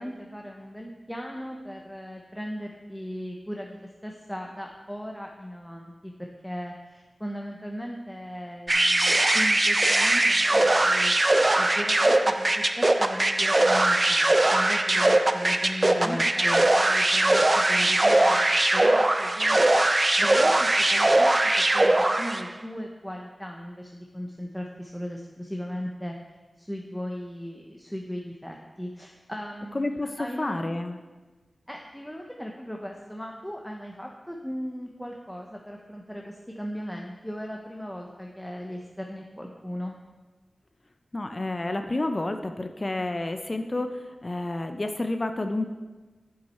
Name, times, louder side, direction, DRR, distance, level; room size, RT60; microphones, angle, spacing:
voice 1, 0.0-11.1 11.5-18.4 18.7-19.6 20.2-26.1 26.6-30.6 31.7-40.0, equal, 5° left, 1 dB, 0.8 m, -37 dB
sound 1, 8.7-22.5, right 2 dB, 35° right, 0.5 m, -21 dB
voice 2, 15.9-16.6 29.7-31.0 41.1-45.6, left 2 dB, 40° left, 6 dB, 0.6 m, -30 dB
8.5 x 7.6 x 4.3 m, 1.3 s
wide cardioid pair, 55°, 0 cm